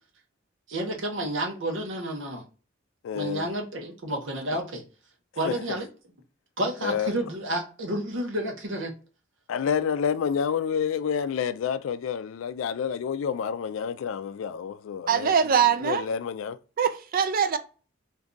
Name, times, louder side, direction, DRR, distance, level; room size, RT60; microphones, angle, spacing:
voice 1, 0.7-2.4 3.1-4.8 5.3-5.9 6.6-8.9, right 1 dB, 65° right, 0.9 m, -30 dB
voice 2, 3.0-3.5 5.4-5.8 6.8-7.1 9.5-16.6, left 7 dB, 75° left, 0.3 m, -29 dB
voice 3, 15.1-16.0 16.8-17.6, right 7 dB, 45° right, 0.4 m, -22 dB
2.6 x 2.3 x 3.7 m
head